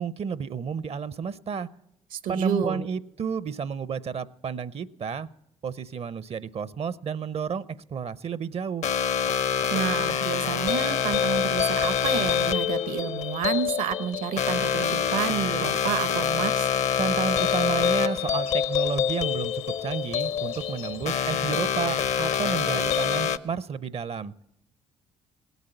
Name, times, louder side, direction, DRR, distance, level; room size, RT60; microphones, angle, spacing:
voice 1, 0.0-1.7 2.3-5.3 5.6-7.6 7.9-8.9 17.0-24.3, right 6 dB, 45° right, 18 dB, 0.6 m, -31 dB
voice 2, 2.1-2.8 9.7-16.7, right 8 dB, 70° right, 14 dB, 0.9 m, -29 dB
sound 1, 8.8-23.4, left 8 dB, 55° left, 0.6 m, -26 dB
sound 2, 16.0-23.1, left 8 dB, 80° left, 1.1 m, -46 dB
18.0 x 8.1 x 7.8 m, 0.82 s
hypercardioid pair, 55°, 15 cm